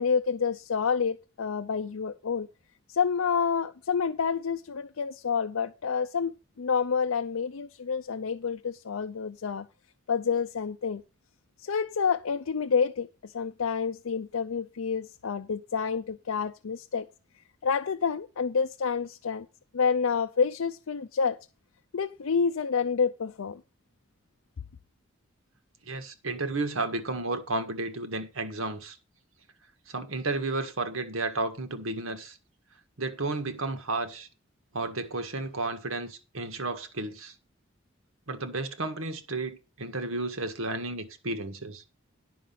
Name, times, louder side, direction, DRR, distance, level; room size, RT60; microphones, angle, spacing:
voice 1, 0.0-2.5 2.9-9.7 10.1-11.0 11.6-17.1 17.6-19.5 19.7-21.4 21.9-23.6, left 6 dB, 85° left, 0.5 m, -28 dB
voice 2, 25.9-29.0 29.9-32.4 33.0-34.3 34.7-37.3 38.3-41.8, right 2 dB, 80° right, 1.6 m, -32 dB
10.5 x 6.3 x 5.8 m
head